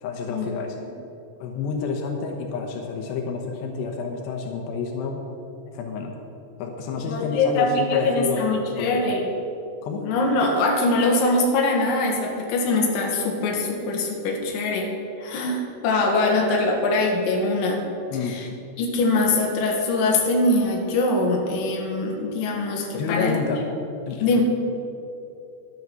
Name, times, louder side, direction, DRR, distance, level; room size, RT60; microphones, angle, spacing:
voice 1, 0.0-0.8 1.4-5.3 5.7-6.2 6.6-9.1 9.8-10.1 18.1-18.4 22.9-23.6 24.1-24.4, left 4 dB, 85° left, 2 dB, 3.2 m, -29 dB
voice 2, 7.1-9.3 10.0-14.9 15.2-17.8 18.2-18.5 18.8-23.4 24.2-24.4, left 2 dB, 60° left, 0 dB, 2.9 m, -22 dB
12.5 x 9.0 x 6.2 m, 2.7 s
omnidirectional pair, 4.8 m